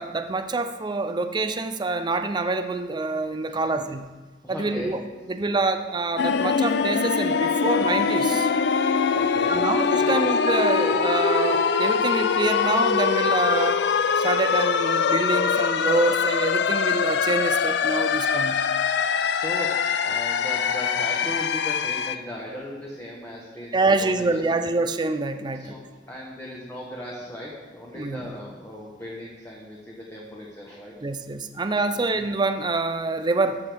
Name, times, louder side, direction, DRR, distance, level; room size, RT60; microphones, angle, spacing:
voice 1, 0.0-4.1 4.5-5.0 5.3-8.5 9.5-13.8 14.2-18.6 23.7-25.7 27.9-28.2 31.0-33.6, right 3 dB, 25° right, 8 dB, 0.4 m, -26 dB
voice 2, 3.5-3.8 4.4-4.9 9.1-10.2 19.3-19.7 20.0-24.6 25.6-30.9 31.9-32.1, equal, 15° left, -4 dB, 1.1 m, -38 dB
sound 1, 6.2-22.2, left 6 dB, 70° left, 0.4 m, -23 dB
14.0 x 6.3 x 3.5 m, 1.3 s
head